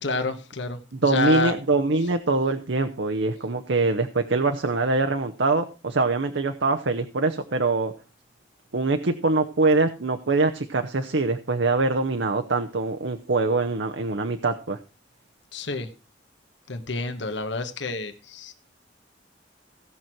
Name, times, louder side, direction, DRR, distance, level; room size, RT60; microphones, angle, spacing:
voice 1, 0.0-1.5 15.5-15.9 16.7-18.5, left 3 dB, 70° left, 8 dB, 1.2 m, -29 dB
voice 2, 1.0-7.9 8.7-14.8, right 3 dB, 75° right, 6 dB, 0.8 m, -23 dB
17.0 x 6.2 x 4.4 m, 0.33 s
head